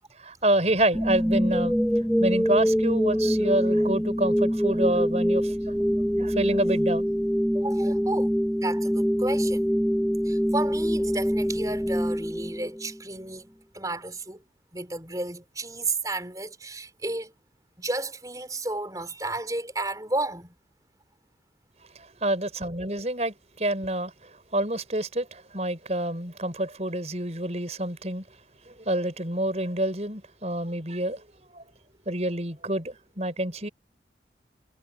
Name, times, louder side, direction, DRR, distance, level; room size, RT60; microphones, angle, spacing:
voice 1, 0.2-1.8 2.2-5.5 6.2-7.1 22.2-24.1 24.5-28.2 28.9-31.2 31.5-31.6 32.1-33.7, right 1 dB, 40° right, 5.8 m, -27 dB
sound 1, 0.9-13.0, equal, ahead, 1.0 m, -24 dB
voice 2, 7.5-8.3 8.6-9.6 10.2-14.4 14.7-17.3 17.8-20.5, right 2 dB, 20° right, 5.1 m, -32 dB
head